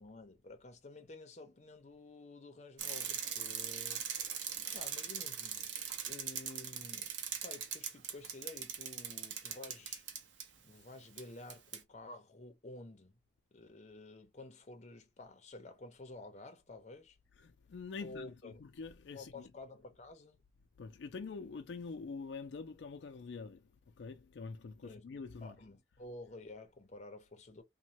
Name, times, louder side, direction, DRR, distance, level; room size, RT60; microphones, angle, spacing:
voice 1, 0.0-4.3 4.7-5.7 6.1-7.1 7.4-10.0 10.6-13.2 13.5-17.2 18.0-18.5 19.1-20.4 24.8-25.0 25.4-27.6, left 2 dB, 40° left, 0.7 m, -51 dB
Bicycle, 2.8-10.5 11.2-11.3 11.5-11.8, right 8 dB, 85° right, 0.6 m, -41 dB
voice 2, 17.4-19.5 20.8-25.5, left 4 dB, 75° left, 0.4 m, -46 dB
3.0 x 2.2 x 2.8 m
head